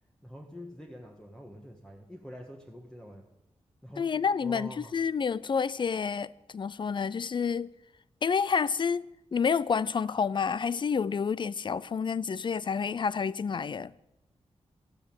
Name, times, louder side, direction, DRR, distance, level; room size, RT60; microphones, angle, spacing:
voice 1, 0.2-3.3 3.8-5.0, equal, 5° left, 1.5 m, -46 dB
voice 2, 4.0-7.7 8.2-9.1 9.3-13.9, left 6 dB, 45° left, 0.5 m, -29 dB
13.5 x 9.6 x 9.0 m
wide cardioid pair, 105°, 11 cm